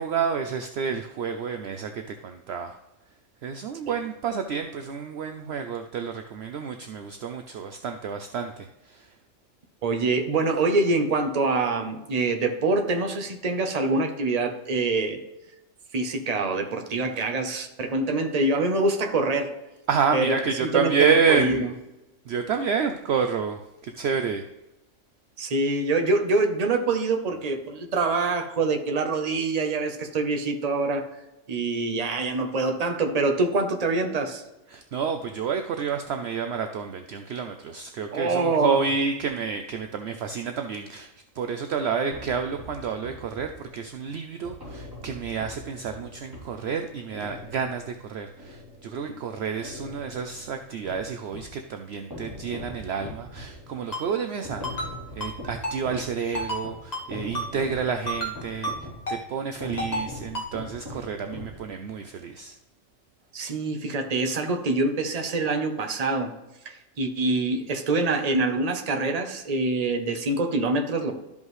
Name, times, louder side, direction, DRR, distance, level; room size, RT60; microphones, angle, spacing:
voice 1, 0.0-2.8 3.4-9.1 19.9-21.7 22.3-24.5 34.7-41.1 41.3-62.5, right 6 dB, 65° right, 6 dB, 0.7 m, -29 dB
voice 2, 9.8-15.2 15.9-19.5 20.1-21.7 25.4-31.1 31.5-34.4 38.1-38.8 49.1-49.2 63.3-66.3 66.6-71.1, right 3 dB, 35° right, 5 dB, 0.8 m, -25 dB
sound 1, 42.1-49.2 49.6-51.6 52.1-62.0, left 1 dB, 15° right, 3.1 m, -42 dB
Ringtone, 53.9-54.0 54.6-54.9 55.2-55.3 55.6-55.8 56.4-56.6 56.9-57.1 57.4-57.5 58.1-58.3 58.6-58.8 59.1-59.2 59.8-60.1 60.4-60.5, equal, 30° left, 1.6 m, -30 dB
13.0 x 5.3 x 3.1 m, 1.0 s
omnidirectional pair, 1.3 m